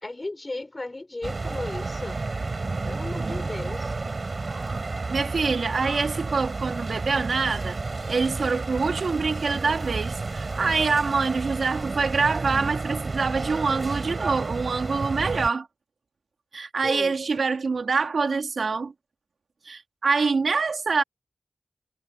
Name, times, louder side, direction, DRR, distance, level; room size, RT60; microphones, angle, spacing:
voice 1, 0.0-2.2 2.9-3.9 16.8-17.1, left 2 dB, 40° left, 4.7 m, -35 dB
sound 1, 1.2-15.5, right 3 dB, 60° right, 6.4 m, -31 dB
voice 2, 5.1-7.8 8.1-15.7 16.5-18.9 19.6-21.0, right 4 dB, 80° right, 2.7 m, -25 dB
cardioid pair, 40°, 0 cm